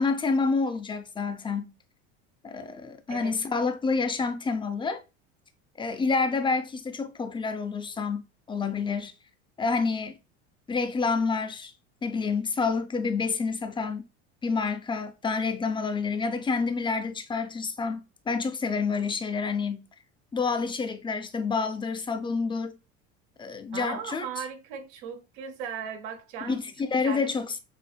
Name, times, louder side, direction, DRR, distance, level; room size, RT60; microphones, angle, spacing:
voice 1, 0.0-1.7 2.4-5.0 5.8-9.1 9.6-10.2 10.7-11.7 12.0-14.1 14.4-19.9 20.3-22.8 23.4-24.3 26.4-27.6, left 4 dB, 15° left, 0.6 m, -28 dB
voice 2, 23.7-26.6 27.0-27.3, right 7 dB, 80° right, 1.2 m, -37 dB
6.2 x 2.5 x 2.2 m
supercardioid pair, 105°, 33 cm